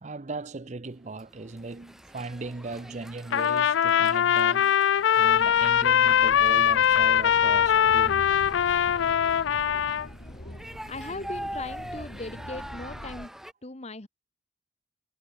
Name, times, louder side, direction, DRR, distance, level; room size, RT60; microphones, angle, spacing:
voice 1, 0.0-4.8 5.1-8.3, right 3 dB, 40° right, 0.6 m, -38 dB
sound 1, 1.2-13.5, equal, ahead, 0.7 m, -44 dB
Trumpet, 3.3-10.1, left 9 dB, 80° left, 0.4 m, -22 dB
sound 2, 5.3-13.3, left 1 dB, 55° left, 3.7 m, -44 dB
voice 2, 10.9-13.3 13.6-14.1, left 2 dB, 35° left, 1.3 m, -38 dB
head